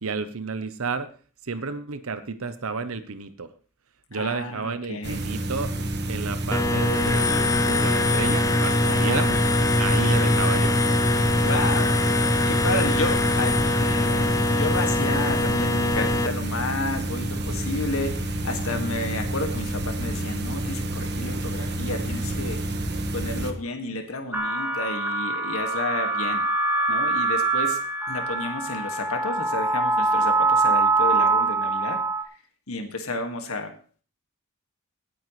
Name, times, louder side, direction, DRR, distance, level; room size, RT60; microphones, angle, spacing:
voice 1, 0.0-1.1 1.4-3.5 4.1-5.7 6.1-7.4 7.7-9.4 9.8-10.8, right 4 dB, 70° right, 11 dB, 0.8 m, -31 dB
voice 2, 4.1-5.2 8.9-9.3 10.2-10.4 11.4-12.0 12.5-22.6 23.1-26.4 26.9-27.8 28.1-32.0 32.7-33.7, left 2 dB, 70° left, 5 dB, 2.0 m, -31 dB
sound 1, 5.0-23.5, right 1 dB, 50° right, 1.5 m, -27 dB
sound 2, 6.5-16.3, left 2 dB, 15° left, 0.5 m, -23 dB
sound 3, 24.3-32.2, right 3 dB, 10° right, 1.7 m, -24 dB
18.0 x 9.1 x 3.2 m, 0.40 s
head